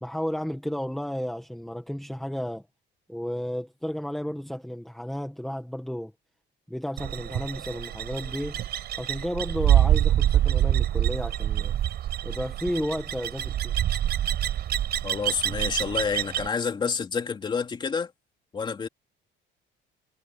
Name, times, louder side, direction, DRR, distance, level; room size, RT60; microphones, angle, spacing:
voice 1, 0.0-2.6 3.1-6.1 6.7-8.6 9.0-11.7 12.2-13.7, equal, ahead, 1.7 m, -32 dB
sound 1, 7.0-16.5, right 12 dB, 50° right, 5.9 m, -26 dB
voice 2, 15.0-18.1 18.5-18.9, left 5 dB, 25° left, 3.1 m, -29 dB
cardioid pair, 180°, 20 cm